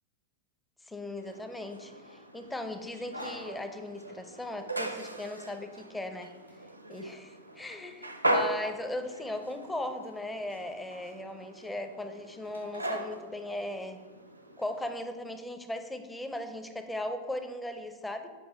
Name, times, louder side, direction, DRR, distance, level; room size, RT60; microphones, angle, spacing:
voice 1, 0.8-6.3 6.9-14.0 14.6-18.3, left 1 dB, 10° left, 7 dB, 0.6 m, -38 dB
sound 1, 1.2-14.9, right 1 dB, 90° right, 0.6 m, -38 dB
7.9 x 5.4 x 4.3 m, 1.4 s
figure-of-eight pair, 90°, 0 cm